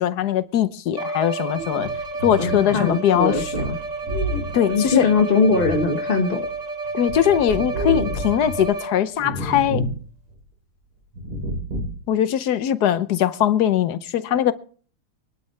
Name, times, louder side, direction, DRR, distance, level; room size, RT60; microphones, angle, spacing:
voice 1, 0.0-1.9 2.2-3.3 4.5-5.1 6.9-9.8 12.1-14.5, left 10 dB, 60° left, 1.2 m, -21 dB
Bowed string instrument, 0.9-9.2, right 2 dB, 30° right, 0.8 m, -31 dB
sound 1, 1.5-6.5 6.8-8.7 9.2-10.0 10.3-10.4 11.1-12.0, equal, 85° right, 5.3 m, -30 dB
voice 2, 2.4-3.8 4.7-6.5, left 4 dB, 30° left, 1.5 m, -21 dB
24.0 x 12.0 x 3.3 m
omnidirectional pair, 2.3 m